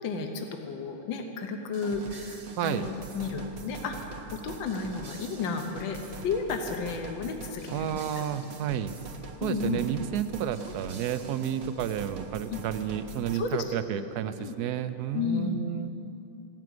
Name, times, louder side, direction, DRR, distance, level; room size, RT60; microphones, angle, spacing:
voice 1, 0.0-8.2 9.4-9.8 12.5-12.6 13.3-13.8 14.4-14.5 15.1-15.6, left 5 dB, 75° left, 4 dB, 1.7 m, -33 dB
sound 1, 1.7-13.4, right 3 dB, 45° right, 1.0 m, -43 dB
voice 2, 7.7-8.9 9.4-15.9, right 10 dB, 70° right, 11 dB, 1.0 m, -31 dB
15.5 x 7.6 x 9.3 m, 2.9 s
omnidirectional pair, 2.1 m